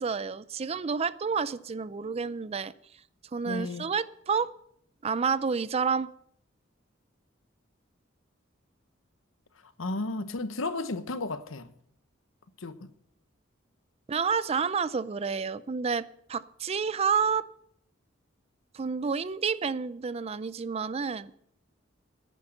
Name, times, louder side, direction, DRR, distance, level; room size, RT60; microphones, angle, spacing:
voice 1, 0.0-2.7 3.3-4.5 5.0-6.1 14.1-17.5 18.7-21.3, right 5 dB, 30° right, 0.4 m, -29 dB
voice 2, 3.4-3.8 9.8-11.7 12.6-12.9, left 2 dB, 85° left, 1.0 m, -33 dB
10.0 x 10.0 x 6.6 m
head